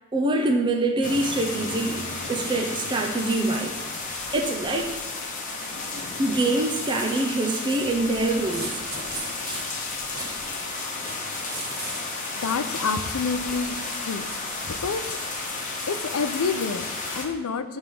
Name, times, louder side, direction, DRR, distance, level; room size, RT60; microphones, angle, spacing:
voice 1, 0.1-2.0 2.3-3.7 4.3-4.9 6.2-8.8, right 2 dB, 20° right, 2 dB, 0.5 m, -24 dB
sound 1, 1.0-17.3, left 3 dB, 35° left, 1.1 m, -33 dB
sound 2, 7.8-16.9, right 2 dB, 50° right, 1.5 m, -40 dB
voice 2, 12.4-13.8 14.1-14.2 14.8-15.1 15.9-17.8, left 5 dB, 90° left, 10 dB, 0.5 m, -28 dB
8.5 x 3.5 x 5.3 m, 1.2 s
head